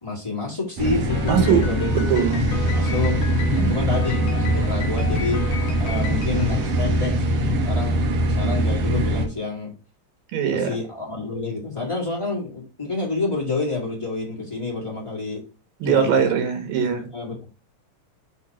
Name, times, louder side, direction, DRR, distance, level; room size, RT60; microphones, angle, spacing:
voice 1, 0.0-1.9 2.7-3.2 3.7-5.4 5.8-7.2 7.6-9.7 10.5-15.4 15.8-16.2 16.8-17.5, left 3 dB, 20° left, -3 dB, 0.8 m, -28 dB
sound 1, 0.8-9.3, right 1 dB, 65° right, 1.6 m, -22 dB
Piano, 1.1-7.6, left 6 dB, 65° left, 1.8 m, -36 dB
voice 2, 1.3-1.7 1.9-2.5 3.5-3.9 10.3-10.7 15.8-17.1, right 7 dB, 85° right, 6 dB, 3.1 m, -21 dB
6.3 x 2.9 x 5.6 m, 0.33 s
omnidirectional pair, 4.0 m